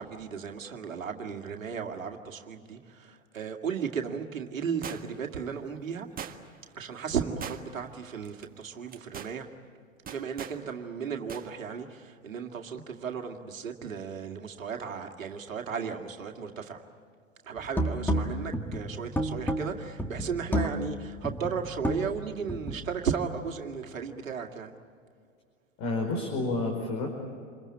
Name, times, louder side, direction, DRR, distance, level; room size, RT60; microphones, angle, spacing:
voice 1, 0.0-6.1 6.7-9.5 10.1-16.8 17.4-24.7, right 6 dB, 85° right, 3 dB, 2.2 m, -35 dB
sound 1, 4.8-5.3 6.2-6.7 7.4-7.9 8.2-8.4 8.9-9.4 10.1-10.6 11.3-11.5 11.8-11.9, right 7 dB, 20° right, 1.7 m, -40 dB
sound 2, 17.6-22.9, equal, 5° left, 1.8 m, -31 dB
voice 2, 25.8-27.1, left 2 dB, 50° left, 1 dB, 5.0 m, -29 dB
28.0 x 22.5 x 8.6 m, 2.2 s
hypercardioid pair, 100°, 39 cm